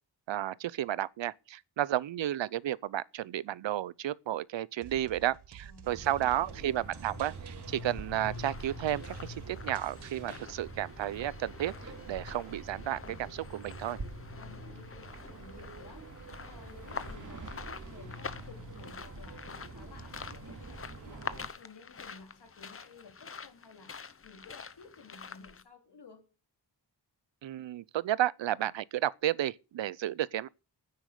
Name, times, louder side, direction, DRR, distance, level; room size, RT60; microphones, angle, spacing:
voice 1, 0.3-14.0 27.4-30.5, right 12 dB, 80° right, 0.7 m, -32 dB
sound 1, 4.8-10.5, right 8 dB, 65° right, 1.0 m, -52 dB
voice 2, 5.6-6.7 14.3-26.3, left 4 dB, 65° left, 3.2 m, -55 dB
sound 2, 5.8-21.5, right 2 dB, 45° right, 2.8 m, -45 dB
sound 3, 8.2-25.6, left 5 dB, 30° left, 0.8 m, -47 dB
10.0 x 9.7 x 6.7 m
wide cardioid pair, 130°, 44 cm